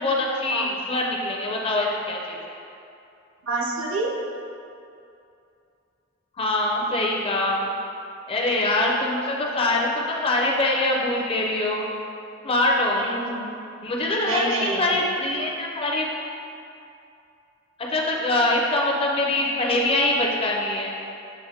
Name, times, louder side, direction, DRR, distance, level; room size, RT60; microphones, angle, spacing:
voice 1, 0.0-2.4 6.4-7.7 8.3-11.9 12.4-13.1 13.8-16.1 17.9-20.9, left 2 dB, 30° left, -1 dB, 0.5 m, -23 dB
voice 2, 3.4-4.1 12.9-13.6 14.2-15.0, right 2 dB, 70° right, -1 dB, 0.6 m, -28 dB
7.0 x 2.5 x 2.7 m, 2.6 s
head